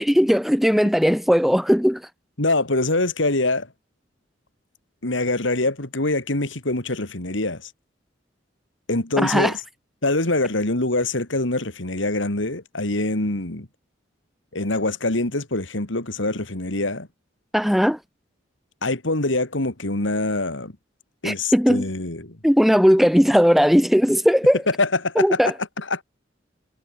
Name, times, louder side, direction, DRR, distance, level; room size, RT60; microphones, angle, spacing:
voice 1, 0.0-2.1 9.2-9.5 17.5-18.0 21.2-21.8 22.4-24.6 25.1-25.5, equal, ahead, 1.4 m, -18 dB
voice 2, 2.4-3.7 5.0-7.7 8.9-9.5 10.0-13.7 14.5-17.1 18.8-20.7 21.2-22.4 24.8-25.4 25.9-26.0, left 2 dB, 80° left, 3.0 m, -24 dB
head